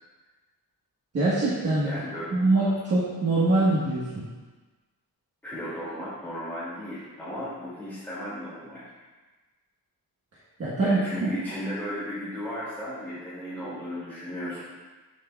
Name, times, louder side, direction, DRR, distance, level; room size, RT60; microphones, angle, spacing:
voice 1, 1.1-1.9 2.3-4.3 10.6-11.3, right 2 dB, 40° right, -9 dB, 1.3 m, -23 dB
voice 2, 1.8-2.3 5.4-8.8 10.8-14.6, equal, 5° left, -12 dB, 2.3 m, -35 dB
7.9 x 7.3 x 2.3 m, 1.3 s
wide cardioid pair, 175°, 36 cm